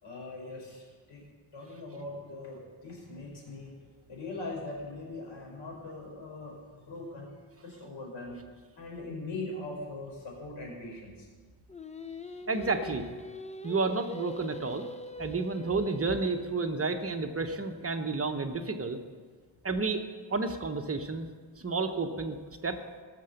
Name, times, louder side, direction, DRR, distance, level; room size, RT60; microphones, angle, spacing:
voice 1, 0.0-1.2 1.5-3.7 4.1-7.3 7.6-8.4 8.8-11.3, left 2 dB, 85° left, -1 dB, 4.9 m, -41 dB
Singing, 11.7-16.9, left 1 dB, 15° left, 0.6 m, -43 dB
voice 2, 12.5-13.1 13.6-14.9 15.2-19.0 19.6-20.0 20.3-21.3 21.6-22.4 22.6-22.8, right 3 dB, 30° right, 5 dB, 1.0 m, -31 dB
20.0 x 6.9 x 6.6 m, 1.5 s
wide cardioid pair, 115°, 43 cm